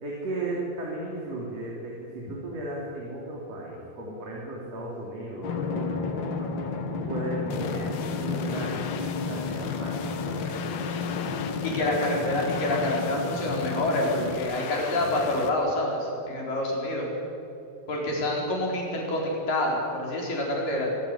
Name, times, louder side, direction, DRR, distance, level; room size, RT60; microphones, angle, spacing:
voice 1, 0.0-6.5 6.9-10.6 11.8-12.0, right 1 dB, 40° right, -4 dB, 4.1 m, -35 dB
Drum, 5.4-14.4, left 4 dB, 90° left, 1.0 m, -32 dB
sound 1, 7.5-15.5, left 7 dB, 75° left, 3.1 m, -38 dB
voice 2, 11.6-17.1 17.9-20.9, left 1 dB, 55° left, -2 dB, 6.0 m, -27 dB
24.0 x 15.0 x 9.8 m, 2.9 s
omnidirectional pair, 4.6 m